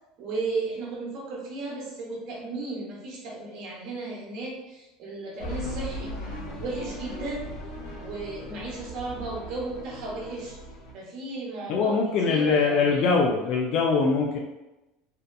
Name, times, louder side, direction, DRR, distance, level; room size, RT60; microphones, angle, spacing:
voice 1, 0.2-6.1 6.6-7.5 8.0-10.6 10.9-11.9 12.2-13.1, right 3 dB, 65° right, -2 dB, 0.8 m, -35 dB
sound 1, 5.4-10.9, left 1 dB, 85° left, 0.7 m, -38 dB
voice 2, 11.7-14.4, left 4 dB, 55° left, -1 dB, 0.4 m, -22 dB
2.8 x 2.4 x 2.2 m, 0.99 s
supercardioid pair, 115°, 0 cm